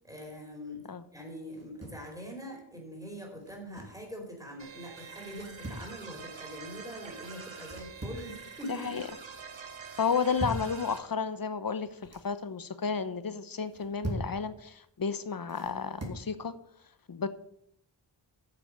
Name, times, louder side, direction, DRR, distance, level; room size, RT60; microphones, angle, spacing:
voice 1, 0.0-0.9 1.1-9.1, equal, 5° right, 1 dB, 4.5 m, -43 dB
sound 1, 1.5-2.1 3.4-4.0 5.3-5.9 7.6-8.3 8.7-9.2 10.0-10.7 11.8-12.3 13.6-14.4 15.5-16.2, right 1 dB, 35° right, 3.0 m, -40 dB
sound 2, 4.6-11.0, right 5 dB, 75° right, 1.8 m, -46 dB
voice 2, 8.7-9.0 10.0-16.5 17.1-17.3, left 6 dB, 50° left, 12 dB, 1.0 m, -32 dB
9.6 x 7.0 x 6.3 m, 0.74 s
cardioid pair, 60°, 46 cm